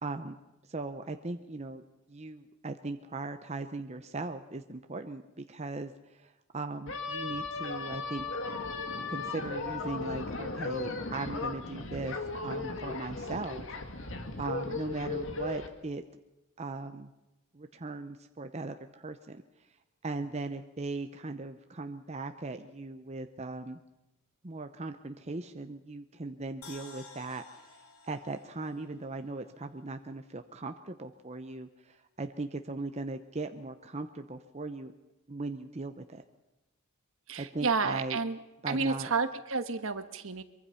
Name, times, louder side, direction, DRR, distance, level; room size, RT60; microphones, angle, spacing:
voice 1, 0.0-0.4 0.7-1.8 2.1-8.3 9.1-12.2 12.4-13.7 14.4-16.0 16.6-17.1 17.5-19.4 20.0-23.8 24.4-34.9 35.3-36.2 37.4-38.2 38.6-39.1, right 3 dB, 30° right, 7 dB, 0.8 m, -38 dB
sound 1, 6.9-15.7, left 3 dB, 60° left, 2.0 m, -36 dB
sound 2, 26.6-29.8 30.2-30.3, left 4 dB, 80° left, 3.4 m, -53 dB
voice 2, 37.3-38.4 38.7-40.4, right 4 dB, 65° right, 10 dB, 1.4 m, -31 dB
23.5 x 23.5 x 5.7 m, 0.98 s
head